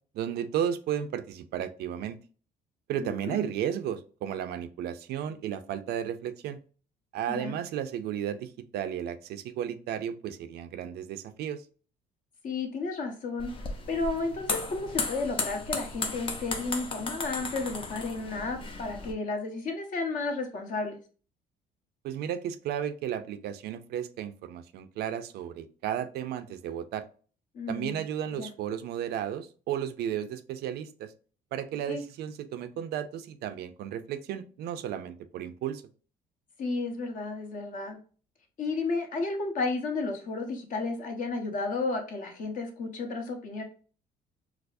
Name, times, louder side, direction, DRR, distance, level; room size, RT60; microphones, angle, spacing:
voice 1, 0.1-2.2 2.9-6.6 7.1-11.6 22.0-27.0 27.7-31.1 31.5-35.8, right 10 dB, 70° right, 10 dB, 0.4 m, -34 dB
voice 2, 3.0-3.5 7.3-7.5 12.4-13.5 13.9-21.0 27.5-28.0 28.3-28.5 31.9-32.0 36.6-38.0 38.6-43.6, left 3 dB, 50° left, 3 dB, 1.0 m, -32 dB
sound 1, 13.4-19.1, left 3 dB, 30° left, 0.6 m, -35 dB
4.6 x 2.0 x 2.5 m, 0.39 s
cardioid pair, 110°, 17 cm